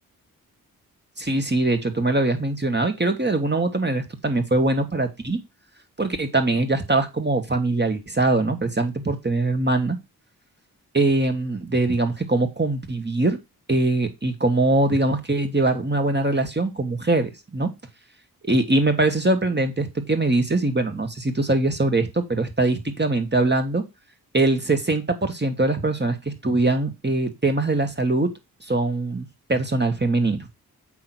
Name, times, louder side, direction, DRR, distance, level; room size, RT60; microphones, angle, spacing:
voice 1, 1.2-5.4 6.0-10.0 10.9-13.4 13.7-17.7 18.4-23.8 24.3-28.3 28.7-30.5, right 2 dB, 30° right, 7 dB, 2.6 m, -22 dB
8.6 x 3.8 x 6.3 m, 0.23 s
supercardioid pair, 40°, 37 cm